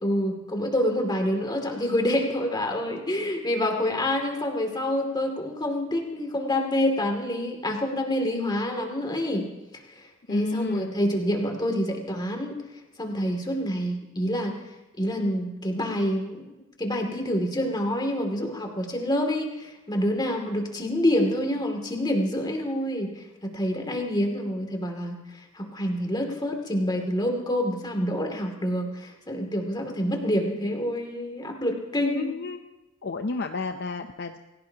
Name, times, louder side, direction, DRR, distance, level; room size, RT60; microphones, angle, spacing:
voice 1, 0.0-9.5 10.3-12.6 13.0-14.5 15.0-16.5 16.8-25.2 25.5-32.3, left 1 dB, 20° left, 2 dB, 2.5 m, -27 dB
voice 2, 10.3-10.9 32.1-32.6 33.0-34.4, left 3 dB, 50° left, 6 dB, 0.6 m, -31 dB
28.0 x 16.5 x 2.9 m, 1.0 s
head